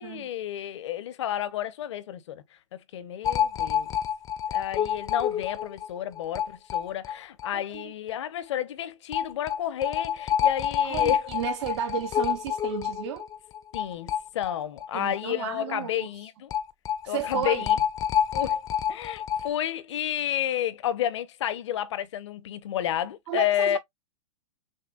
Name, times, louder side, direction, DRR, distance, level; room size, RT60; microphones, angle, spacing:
voice 1, 0.0-2.4 2.7-3.9 4.5-11.5 13.7-16.5 17.1-17.8 18.3-18.6 18.9-23.8, left 11 dB, 65° left, 0.8 m, -31 dB
sound 1, 3.2-7.5 7.8-7.9 8.1-8.2 9.1-14.9 15.2-15.3 16.5-19.5, left 9 dB, 20° left, 0.5 m, -28 dB
voice 2, 7.5-7.9 10.8-13.3 14.9-16.1 17.0-17.7 23.3-23.8, right 10 dB, 60° right, 0.6 m, -33 dB
6.5 x 2.2 x 2.4 m
hypercardioid pair, 125°, 16 cm